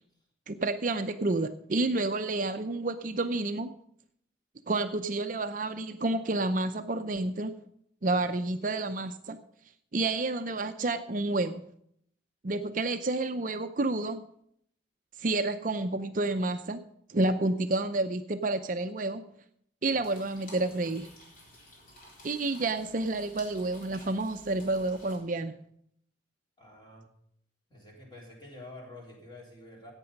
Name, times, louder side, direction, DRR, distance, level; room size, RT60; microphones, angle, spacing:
voice 1, 0.5-3.7 4.7-7.5 8.0-9.4 9.9-11.6 12.4-14.2 15.2-16.8 17.1-19.2 19.8-21.1 22.2-25.5, right 2 dB, 45° right, 8 dB, 0.6 m, -29 dB
sound 1, 20.0-25.2, left 1 dB, 45° left, 3.9 m, -53 dB
voice 2, 26.6-27.1 27.7-29.9, left 2 dB, 25° left, -1 dB, 3.5 m, -48 dB
14.5 x 9.0 x 5.3 m, 0.68 s
head